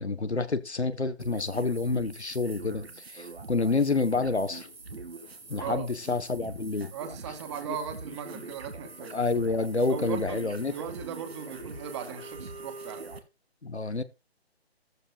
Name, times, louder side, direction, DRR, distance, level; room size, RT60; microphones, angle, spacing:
voice 1, 0.0-4.7 5.5-6.9 9.1-10.7 13.6-14.0, left 3 dB, 85° left, 1.4 m, -28 dB
sound 1, 1.2-13.2, right 3 dB, 70° right, 2.4 m, -44 dB
sound 2, 3.5-12.9, left 10 dB, 20° left, 1.2 m, -54 dB
voice 2, 6.9-9.2 9.9-13.1, right 8 dB, 25° right, 2.4 m, -38 dB
13.5 x 13.5 x 2.4 m
figure-of-eight pair, 145°, 32 cm